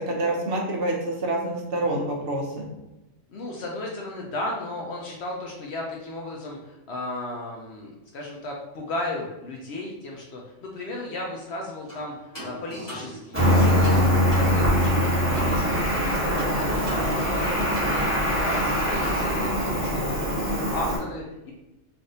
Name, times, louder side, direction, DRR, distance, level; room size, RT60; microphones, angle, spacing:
voice 1, 0.0-2.7, right 1 dB, 60° right, -1 dB, 0.7 m, -27 dB
voice 2, 3.3-21.5, left 2 dB, 65° left, -1 dB, 0.7 m, -35 dB
sound 1, 11.9-12.1 12.3-15.6 15.8-15.9 16.4-17.5 17.7-17.9, right 1 dB, 15° left, 1.1 m, -37 dB
Cricket, 13.3-21.0, equal, 15° right, 0.5 m, -23 dB
3.4 x 2.5 x 2.6 m, 0.99 s
omnidirectional pair, 1.3 m